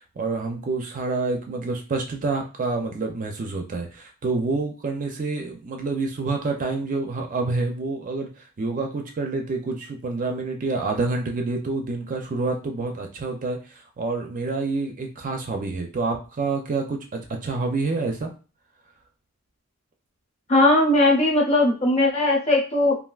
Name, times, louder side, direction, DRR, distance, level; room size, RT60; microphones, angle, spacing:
voice 1, 0.2-18.3, right 3 dB, 35° right, 3 dB, 0.4 m, -28 dB
voice 2, 20.5-23.0, left 2 dB, 30° left, -1 dB, 0.8 m, -19 dB
3.3 x 2.4 x 2.3 m, 0.35 s
head